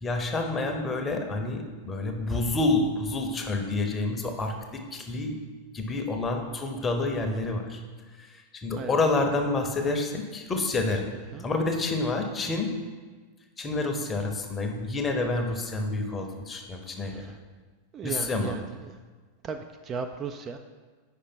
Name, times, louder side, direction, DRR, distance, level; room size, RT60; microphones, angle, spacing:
voice 1, 0.0-5.4 5.7-7.8 8.2-11.1 11.4-12.7 13.6-17.2 18.0-18.6, left 2 dB, 20° left, 4 dB, 0.8 m, -28 dB
voice 2, 17.0-17.3 17.9-18.9 19.4-20.6, right 5 dB, 30° right, 6 dB, 0.3 m, -36 dB
5.4 x 5.0 x 4.4 m, 1.4 s
figure-of-eight pair, 90°, 0 cm